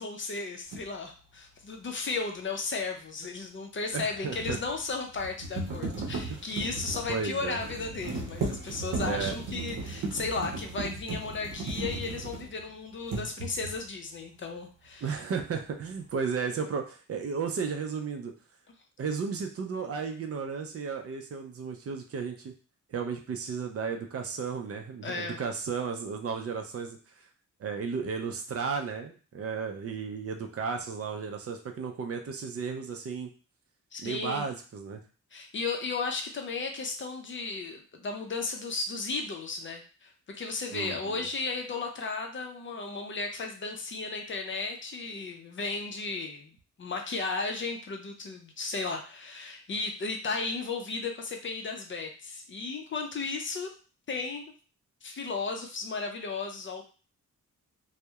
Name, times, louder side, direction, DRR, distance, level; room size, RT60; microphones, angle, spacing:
voice 1, 0.0-15.2 25.0-25.4 33.9-34.5 35.3-53.7 54.1-54.5 55.0-56.9, left 4 dB, 40° left, 3 dB, 0.5 m, -35 dB
sound 1, 0.7-0.9 3.9-12.7 13.0-13.9, right 3 dB, 85° right, 0.7 m, -36 dB
voice 2, 3.9-4.6 6.3-6.4 7.1-7.6 9.0-9.4 15.0-18.3 19.0-22.5 22.9-27.3 27.6-33.3 34.0-35.0 40.7-41.3, right 5 dB, 50° right, 4 dB, 0.4 m, -34 dB
2.7 x 2.0 x 2.3 m, 0.37 s
cardioid pair, 95°, 32 cm